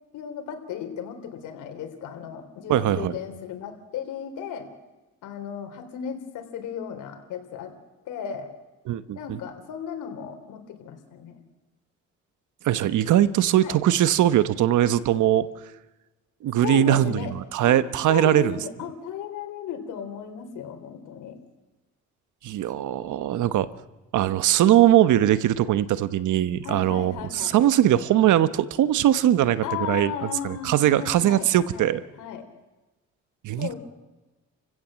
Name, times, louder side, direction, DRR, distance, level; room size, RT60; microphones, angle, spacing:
voice 1, 0.1-4.7 5.2-7.7 8.0-8.5 9.1-11.4 13.6-13.8 16.6-17.3 17.6-17.8 18.1-21.4 26.6-27.6 29.6-31.9 32.2-32.5 33.6-33.8, left 8 dB, 85° left, 6 dB, 3.6 m, -35 dB
voice 2, 2.7-3.2 8.9-9.4 12.6-15.5 16.4-18.6 22.4-23.7 24.1-30.1 30.4-32.0 33.4-33.7, right 12 dB, 80° right, 14 dB, 1.2 m, -21 dB
29.5 x 16.0 x 7.5 m, 1.1 s
cardioid pair, 90°, 30 cm